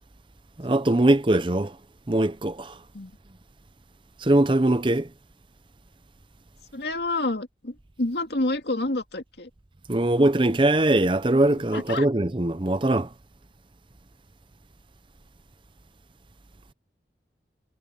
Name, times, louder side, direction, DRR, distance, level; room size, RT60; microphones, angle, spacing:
voice 1, 0.6-1.7 2.1-2.8 4.2-5.1 9.9-13.1, right 1 dB, 30° right, 0.7 m, -21 dB
voice 2, 6.7-9.5 11.5-12.1, left 2 dB, 75° left, 2.3 m, -29 dB
head